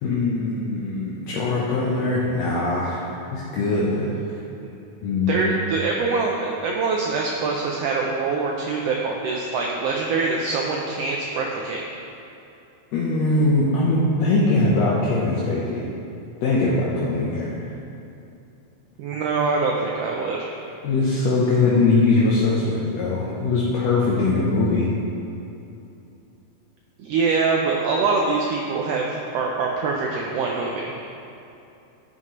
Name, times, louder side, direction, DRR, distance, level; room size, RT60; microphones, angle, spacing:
voice 1, 0.0-3.0 3.3-4.4 5.0-5.4 12.9-15.8 16.4-17.5 20.8-24.9, left 3 dB, 70° left, -6 dB, 2.0 m, -21 dB
voice 2, 5.3-11.8 19.0-20.6 27.0-30.9, right 4 dB, 75° right, -1 dB, 1.5 m, -24 dB
11.0 x 7.6 x 3.1 m, 2.8 s
omnidirectional pair, 3.3 m